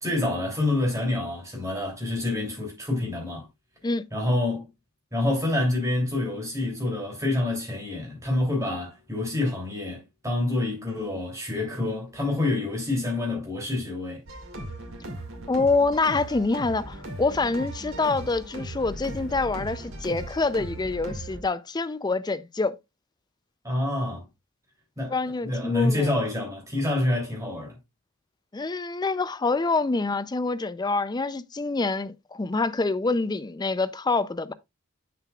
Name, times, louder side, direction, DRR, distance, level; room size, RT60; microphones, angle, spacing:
voice 1, 0.0-3.4 4.1-4.7 5.1-14.2 23.6-24.2 25.0-25.1 25.4-27.8, left 2 dB, 15° right, 2.9 m, -27 dB
sound 1, 14.3-21.4, right 1 dB, 65° right, 2.1 m, -37 dB
voice 2, 15.5-22.8 25.1-26.1 28.5-34.5, left 3 dB, 20° left, 0.4 m, -26 dB
7.5 x 6.7 x 2.3 m
head